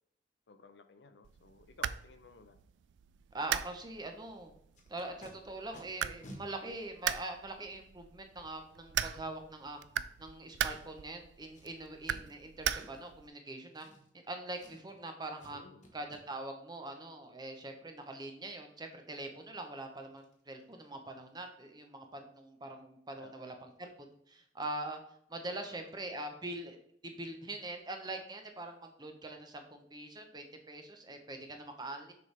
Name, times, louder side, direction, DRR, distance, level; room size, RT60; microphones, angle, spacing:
voice 1, 0.5-2.6 15.5-15.9 23.2-23.5 25.7-25.9, left 3 dB, 70° left, 9 dB, 0.6 m, -56 dB
sound 1, 1.2-13.3, right 10 dB, 90° right, 0.3 m, -40 dB
voice 2, 3.3-4.5 4.9-9.8 10.2-13.9 14.3-15.6 15.9-25.0 25.3-32.1, right 2 dB, 25° right, 5 dB, 0.8 m, -43 dB
Packing tape duct tape, 4.7-5.3 5.7-5.8 6.2-6.4 7.2-7.3 10.6-11.1 11.5-11.7 12.0-12.3 12.7-13.1 13.7-14.3 14.5-15.0 15.4-15.5 15.8-16.2 19.2-19.3 19.7-19.8 20.2-20.3 20.6-20.9 21.1-21.2, equal, 45° left, 1.4 m, -54 dB
6.8 x 5.1 x 3.3 m, 0.69 s
head